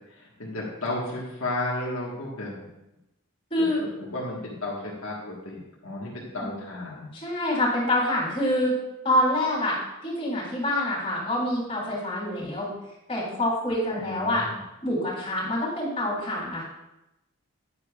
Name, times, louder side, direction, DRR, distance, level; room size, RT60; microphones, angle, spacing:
voice 1, 0.1-2.6 3.6-7.1 13.9-14.6, left 2 dB, 70° left, -4 dB, 1.5 m, -33 dB
voice 2, 3.5-3.8 6.4-6.5 7.1-8.8 9.0-12.7 13.1-14.5 14.8-16.6, left 1 dB, 25° left, -5 dB, 3.4 m, -26 dB
10.0 x 9.7 x 2.4 m, 0.91 s
head